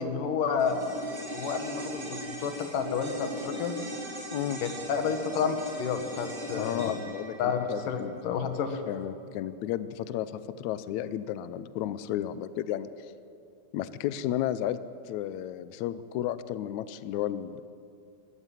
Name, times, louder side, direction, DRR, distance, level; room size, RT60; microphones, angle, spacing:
voice 1, 0.0-3.7 4.6-6.9 7.4-8.8, left 6 dB, 65° left, 7 dB, 3.0 m, -30 dB
sound 1, 0.6-9.1 9.4-9.5, equal, 15° right, 4.4 m, -39 dB
voice 2, 6.6-8.1 8.9-12.9 13.7-14.8 15.0-17.6, left 12 dB, 85° left, 14 dB, 1.6 m, -33 dB
22.5 x 15.0 x 9.0 m, 2.4 s
omnidirectional pair, 4.3 m